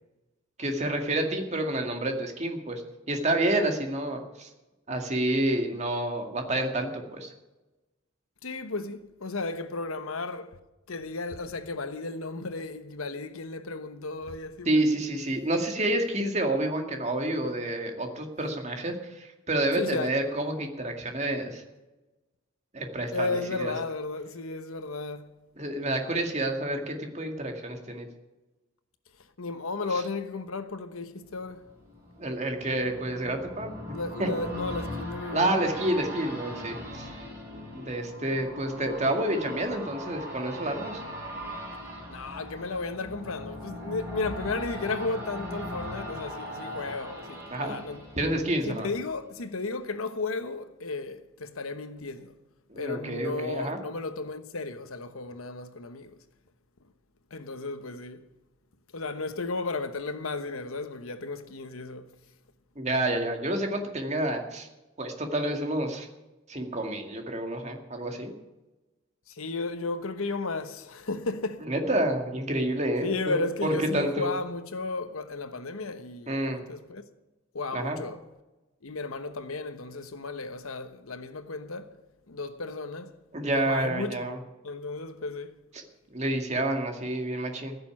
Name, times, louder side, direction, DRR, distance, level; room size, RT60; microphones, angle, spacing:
voice 1, 0.6-2.8 3.1-4.5 4.9-7.3 14.7-21.6 22.7-23.7 25.6-28.1 32.2-34.3 35.3-37.1 37.7-41.0 47.5-47.8 48.2-48.9 52.7-53.8 62.8-64.7 65.0-66.1 66.5-68.3 71.7-74.3 76.3-76.6 77.7-78.0 83.3-84.4 86.1-87.8, right 1 dB, 35° right, 2.1 m, -29 dB
voice 2, 8.4-10.6 10.9-14.8 19.8-20.1 23.1-25.3 29.4-31.7 33.9-35.5 42.1-48.0 48.6-52.4 52.8-56.1 57.3-58.2 58.9-62.1 69.3-71.6 73.0-77.0 77.5-78.2 78.8-81.9 82.3-83.1 83.5-84.3 84.6-85.5, left 3 dB, 85° left, 1.1 m, -34 dB
sound 1, 31.3-49.1 49.5-49.6, equal, 10° right, 4.1 m, -39 dB
15.5 x 6.9 x 9.7 m
head